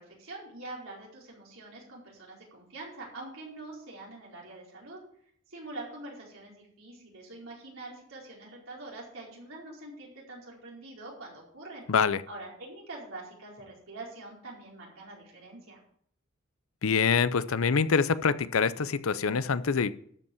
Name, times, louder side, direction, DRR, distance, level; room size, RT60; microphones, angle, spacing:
voice 1, 0.0-5.0 5.5-11.9 12.3-15.8, right 2 dB, 75° right, -3 dB, 4.6 m, -45 dB
voice 2, 11.9-12.2 16.8-19.9, left 5 dB, 80° left, 15 dB, 0.6 m, -25 dB
12.5 x 5.5 x 7.1 m, 0.65 s
head